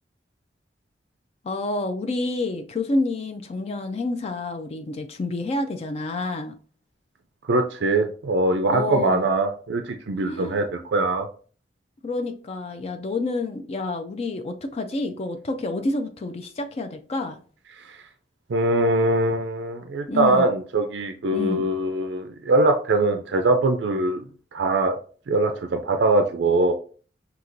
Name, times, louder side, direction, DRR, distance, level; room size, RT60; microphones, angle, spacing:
voice 1, 1.4-6.5 8.7-9.2 10.2-10.6 12.0-17.4 20.1-20.5 21.3-21.7, left 2 dB, 35° left, 6 dB, 0.4 m, -28 dB
voice 2, 7.5-11.3 17.8-18.0 18.5-24.2 24.5-25.0 25.3-26.7, right 2 dB, 85° right, 6 dB, 0.4 m, -22 dB
5.9 x 2.8 x 2.6 m, 0.41 s
head